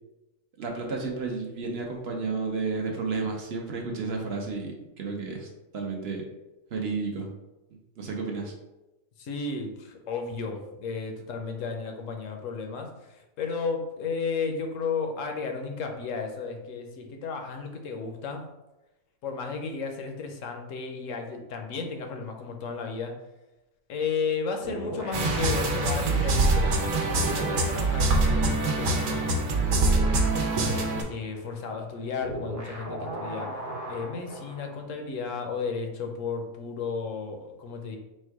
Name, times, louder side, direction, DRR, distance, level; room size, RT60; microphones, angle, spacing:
voice 1, 0.6-5.5 5.7-6.2 6.7-7.3 8.0-8.5, right 4 dB, 55° right, 1 dB, 0.8 m, -32 dB
voice 2, 9.2-18.4 19.2-23.1 23.9-30.1 30.7-33.5 33.9-38.0, left 5 dB, 65° left, 3 dB, 0.9 m, -33 dB
sound 1, 24.6-26.9 27.2-34.7, right 1 dB, 20° right, 0.5 m, -39 dB
sound 2, 25.1-31.0, right 2 dB, 75° right, 1.2 m, -24 dB
4.4 x 2.2 x 4.6 m, 1.0 s
omnidirectional pair, 1.6 m